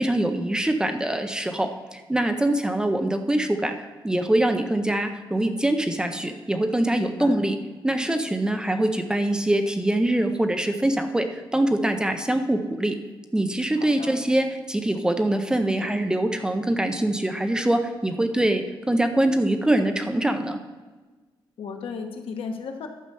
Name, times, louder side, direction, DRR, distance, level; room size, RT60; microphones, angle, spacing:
voice 1, 0.0-7.6 7.8-13.0 13.3-20.6, right 1 dB, 10° right, 6 dB, 0.5 m, -24 dB
voice 2, 7.0-7.3 13.8-14.2 21.6-22.9, left 5 dB, 80° left, 4 dB, 1.2 m, -35 dB
11.0 x 6.8 x 5.4 m, 1.3 s
wide cardioid pair, 175°, 9 cm